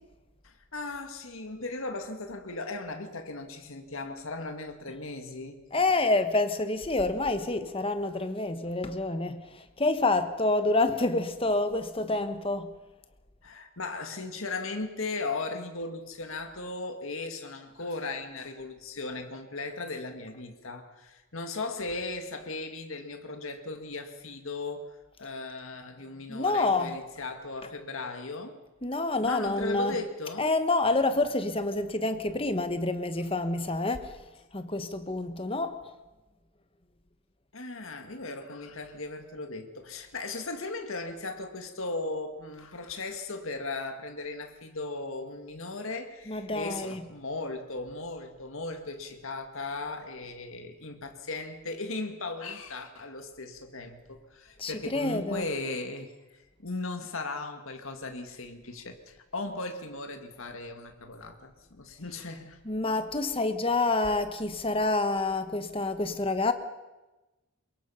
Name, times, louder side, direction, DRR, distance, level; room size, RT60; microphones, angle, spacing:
voice 1, 0.4-5.7 13.4-24.9 25.2-28.6 29.2-30.5 37.5-62.6, left 3 dB, 65° left, 1.9 m, -37 dB
voice 2, 5.7-12.7 26.3-26.9 28.8-30.0 30.4-34.1 34.5-35.8 46.3-47.0 54.6-55.5 62.6-66.5, left 2 dB, 25° left, 1.3 m, -28 dB
23.0 x 22.0 x 5.7 m
head